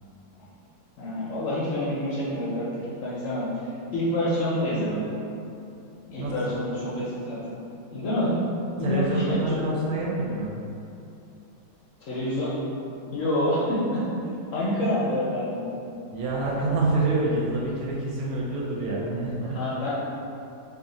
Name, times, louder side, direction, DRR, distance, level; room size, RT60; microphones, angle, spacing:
voice 1, 1.0-3.5 3.9-5.1 6.1-7.6 7.9-8.4 8.8-9.6 12.0-12.6 13.1-14.0 14.5-15.8 19.4-19.9, left 1 dB, 65° left, -8 dB, 0.8 m, -27 dB
voice 2, 6.2-6.5 8.8-10.5 16.1-19.6, right 2 dB, 75° right, -4 dB, 1.0 m, -27 dB
2.6 x 2.4 x 3.8 m, 2.7 s
omnidirectional pair, 1.7 m